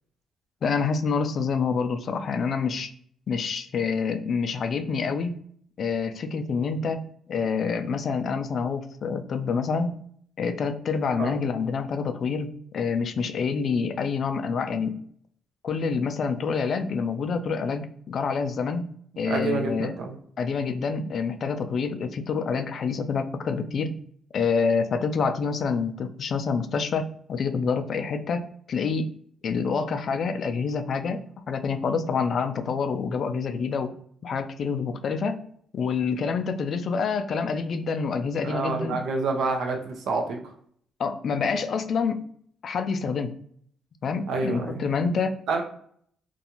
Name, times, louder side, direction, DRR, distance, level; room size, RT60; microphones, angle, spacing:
voice 1, 0.6-2.9 3.3-5.3 5.8-10.0 10.4-15.0 15.6-18.9 19.2-19.9 20.4-24.0 24.3-29.1 29.4-31.2 31.5-34.0 34.2-35.4 35.7-39.0 41.0-42.3 42.6-43.3 44.0-45.4, left 5 dB, 55° left, 9 dB, 0.3 m, -27 dB
voice 2, 19.2-20.2 38.4-40.4 44.3-44.8 45.5-45.6, right 3 dB, 75° right, 3 dB, 0.5 m, -27 dB
2.5 x 2.3 x 2.8 m, 0.62 s
cardioid pair, 90°, 0 cm